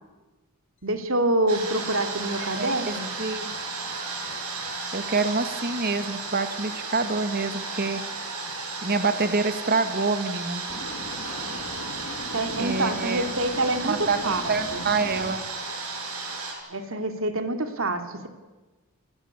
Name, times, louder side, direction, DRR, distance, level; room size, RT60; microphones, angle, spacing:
voice 1, 0.8-3.1 12.3-14.4 14.7-14.8 16.7-18.3, right 2 dB, 65° right, 6 dB, 2.6 m, -26 dB
sound 1, 1.5-16.5, right 3 dB, 80° right, 6.7 m, -34 dB
voice 2, 2.4-3.6 4.9-8.0 8.8-10.6 12.6-13.3 13.9-15.4, right 4 dB, 45° right, 9 dB, 1.8 m, -27 dB
sound 2, 10.7-15.3, left 2 dB, 55° left, 1.8 m, -39 dB
29.5 x 15.5 x 8.6 m, 1.2 s
head